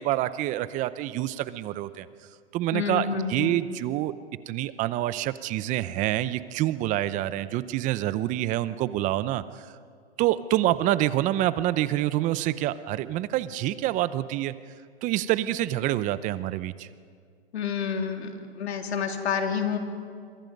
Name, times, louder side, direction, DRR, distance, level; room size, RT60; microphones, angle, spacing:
voice 1, 0.0-2.1 2.5-4.1 4.5-9.7 10.2-14.5 15.0-16.9, right 14 dB, 25° right, 15 dB, 0.7 m, -27 dB
voice 2, 2.7-3.6 17.5-18.3 18.6-19.8, left 6 dB, 75° left, 4 dB, 3.3 m, -28 dB
28.0 x 24.0 x 5.3 m, 2.2 s
hypercardioid pair, 135°, 33 cm